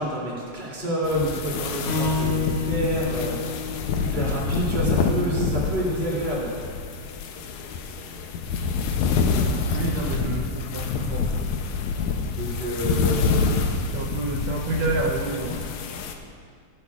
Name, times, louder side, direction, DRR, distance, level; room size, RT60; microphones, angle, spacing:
voice 1, 0.0-3.3 4.0-6.5 12.4-13.4, right 1 dB, 20° right, -6 dB, 2.6 m, -28 dB
sound 1, 1.0-16.1, left 4 dB, 80° left, 1.7 m, -27 dB
Strum, 1.8-6.2, left 4 dB, 35° left, 2.1 m, -31 dB
voice 2, 9.7-11.3 13.9-15.6, right 3 dB, 90° right, -2 dB, 1.5 m, -29 dB
15.0 x 12.0 x 2.4 m, 2.1 s
omnidirectional pair, 4.1 m